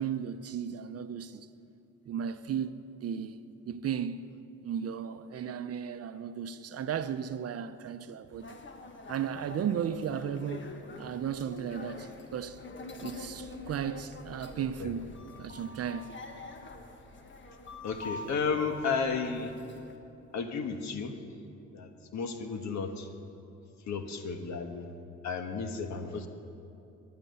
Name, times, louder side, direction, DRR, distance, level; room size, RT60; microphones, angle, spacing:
voice 1, 0.0-1.5 2.1-3.4 3.7-4.3 4.6-8.6 9.1-10.7 11.0-12.6 13.0-16.1, right 8 dB, 50° right, 0.7 m, -35 dB
sound 1, 8.4-20.0, left 3 dB, 40° left, 1.5 m, -46 dB
voice 2, 14.6-14.9 17.8-19.5 20.3-21.1 21.7-23.1 23.9-24.9 25.2-26.3, left 5 dB, 65° left, 1.4 m, -33 dB
19.5 x 11.0 x 5.6 m
cardioid pair, 90°, 30 cm